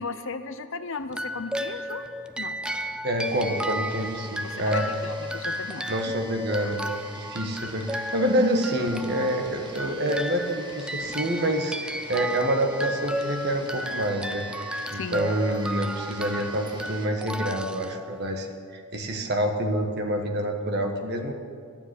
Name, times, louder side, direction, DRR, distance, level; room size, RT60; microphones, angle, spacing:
voice 1, 0.0-2.1 2.4-2.6 4.4-5.8 14.9-15.3, left 4 dB, 60° left, 11 dB, 0.7 m, -36 dB
sound 1, 1.1-18.5, equal, 5° right, 0.3 m, -34 dB
voice 2, 2.7-4.9 5.9-18.5 18.7-21.3, right 1 dB, 50° right, 4 dB, 1.4 m, -27 dB
sound 2, 3.2-17.1, right 2 dB, 20° right, 1.4 m, -45 dB
12.5 x 7.1 x 9.8 m, 2.1 s
head